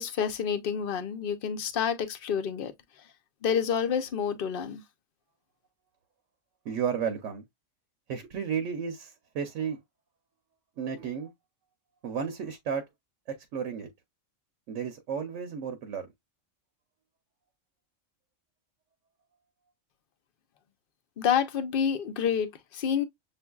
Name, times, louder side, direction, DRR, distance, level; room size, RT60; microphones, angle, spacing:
voice 1, 0.0-2.7 3.4-4.8 21.2-23.0, left 7 dB, 50° left, 0.7 m, -28 dB
voice 2, 6.6-7.5 8.1-9.8 10.8-11.3 12.0-12.9 13.3-13.9 14.7-16.1, right 7 dB, 70° right, 1.0 m, -33 dB
7.0 x 2.6 x 2.2 m
omnidirectional pair, 1.4 m